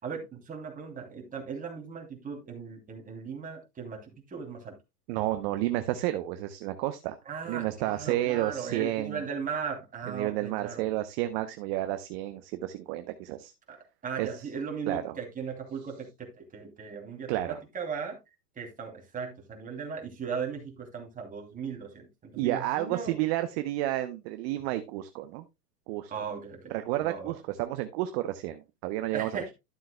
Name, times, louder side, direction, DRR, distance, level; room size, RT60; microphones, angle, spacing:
voice 1, 0.0-4.8 7.3-10.9 13.7-13.8 14.0-18.2 18.6-23.2 26.1-27.3 29.1-29.5, right 6 dB, 15° right, 2 dB, 2.8 m, -37 dB
voice 2, 5.1-7.2 7.5-9.2 10.1-13.5 14.2-14.5 14.9-15.1 17.3-17.6 22.4-25.4 25.9-26.1 26.7-29.4, right 15 dB, 40° right, 10 dB, 0.8 m, -31 dB
12.5 x 7.4 x 2.2 m, 0.23 s
hypercardioid pair, 115°, 48 cm